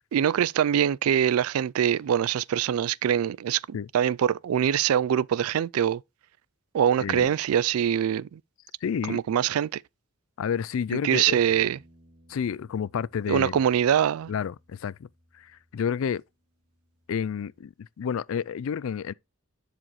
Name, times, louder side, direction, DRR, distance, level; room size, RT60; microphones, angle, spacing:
voice 1, 0.1-6.0 6.7-8.4 9.1-9.8 10.9-11.8 13.3-14.3, right 9 dB, 85° right, 0.3 m, -24 dB
voice 2, 7.0-7.3 8.8-9.2 10.4-11.4 12.3-13.6 14.3-15.1 15.3-16.2 17.1-19.1, left 7 dB, 70° left, 0.3 m, -30 dB
sound 1, 11.4-17.6, equal, 45° right, 2.9 m, -61 dB
11.0 x 5.0 x 3.1 m
head